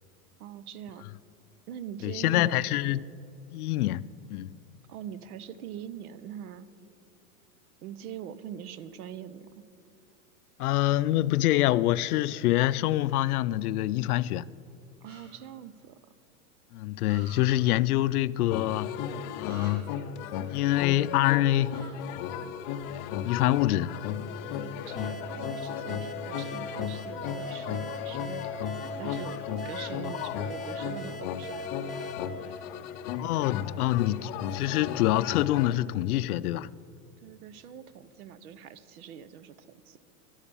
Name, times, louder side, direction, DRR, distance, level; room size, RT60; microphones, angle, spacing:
voice 1, 0.4-1.1 1.7-2.6 4.9-6.7 7.8-9.6 15.0-16.0 24.5-29.4 29.6-32.0 32.4-32.6 37.2-40.0, right 9 dB, 75° right, 0.9 m, -43 dB
voice 2, 2.0-3.0 3.5-4.0 4.3-4.5 10.6-14.5 16.7-18.9 19.3-19.9 20.5-21.7 22.9-24.0 30.0-30.3 33.2-36.7, left 15 dB, 80° left, 0.5 m, -26 dB
sound 1, 15.0-15.2 17.1-17.4 19.5-19.7 21.7-21.9, right 3 dB, 55° right, 4.0 m, -48 dB
sound 2, 18.5-35.7, left 9 dB, 30° left, 0.5 m, -35 dB
sound 3, 25.0-33.4, right 1 dB, ahead, 0.9 m, -41 dB
12.5 x 12.0 x 7.0 m
supercardioid pair, 155°, 44 cm